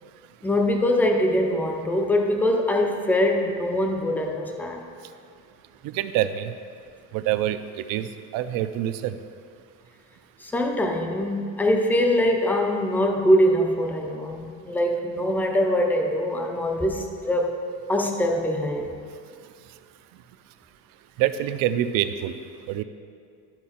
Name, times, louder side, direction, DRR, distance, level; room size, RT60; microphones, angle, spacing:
voice 1, 0.4-4.8 10.4-17.6 17.9-19.0, left 1 dB, 5° left, 3 dB, 0.4 m, -23 dB
voice 2, 5.9-6.5 7.1-7.6 7.9-8.1 8.3-9.1 21.2-22.3 22.7-22.8, right 12 dB, 65° right, 11 dB, 0.5 m, -25 dB
12.0 x 4.6 x 4.3 m, 2.3 s
cardioid pair, 165°, 36 cm